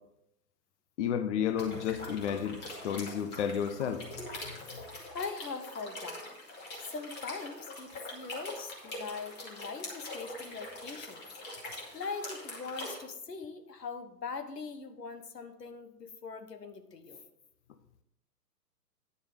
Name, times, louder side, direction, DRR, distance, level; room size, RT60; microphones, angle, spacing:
voice 1, 1.0-2.6 2.8-4.1, left 8 dB, 45° left, 9 dB, 0.8 m, -31 dB
sound 1, 1.6-13.0, left 2 dB, 20° left, 2.3 m, -43 dB
voice 2, 4.9-6.2 6.8-11.2 11.9-17.2, left 4 dB, 80° left, 8 dB, 1.4 m, -41 dB
9.7 x 6.8 x 5.1 m, 0.80 s
figure-of-eight pair, 120°, 48 cm